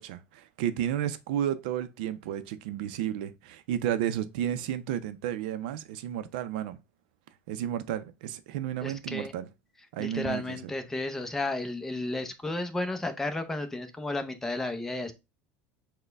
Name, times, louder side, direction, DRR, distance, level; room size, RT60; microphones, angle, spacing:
voice 1, 0.0-6.8 7.5-9.5 9.9-10.6, right 10 dB, 90° right, 0.5 m, -32 dB
voice 2, 8.8-9.3 10.0-15.1, left 2 dB, 10° left, 0.6 m, -33 dB
6.4 x 2.2 x 3.3 m
cardioid pair, 155°, 5 cm